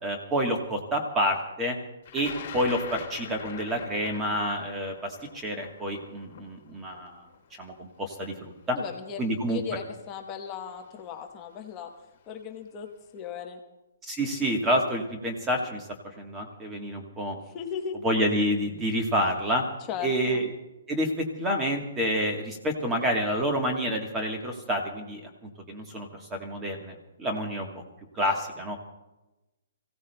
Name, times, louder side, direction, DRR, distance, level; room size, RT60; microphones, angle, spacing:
voice 1, 0.0-1.7 2.1-7.2 7.6-8.8 9.2-9.6 14.0-15.9 16.2-17.4 18.0-19.6 20.0-20.5 20.9-25.3 25.7-27.7 28.1-28.8, equal, 10° right, 3 dB, 1.2 m, -28 dB
Thunder, 2.1-8.1 9.0-9.1 10.2-10.5 10.8-11.3, left 7 dB, 35° left, 1.6 m, -43 dB
voice 2, 8.7-11.9 12.3-13.6 17.4-18.0 19.9-20.4, left 7 dB, 15° left, 3 dB, 0.9 m, -37 dB
29.0 x 16.5 x 2.2 m, 1.0 s
hypercardioid pair, 180°, 0 cm